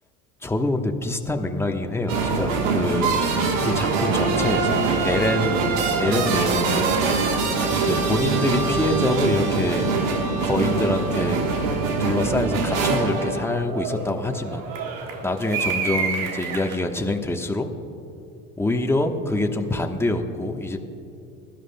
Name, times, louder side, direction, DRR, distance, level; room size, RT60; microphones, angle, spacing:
voice 1, 0.4-3.2 3.6-5.7 6.0-6.9 7.8-9.9 10.4-11.4 12.0-14.6 15.2-17.7 18.6-20.8, left 2 dB, 5° left, 4 dB, 1.1 m, -25 dB
sound 1, 2.1-16.8, right 4 dB, 70° right, 1.4 m, -24 dB
22.0 x 12.0 x 2.3 m, 2.8 s
hypercardioid pair, 60°, 42 cm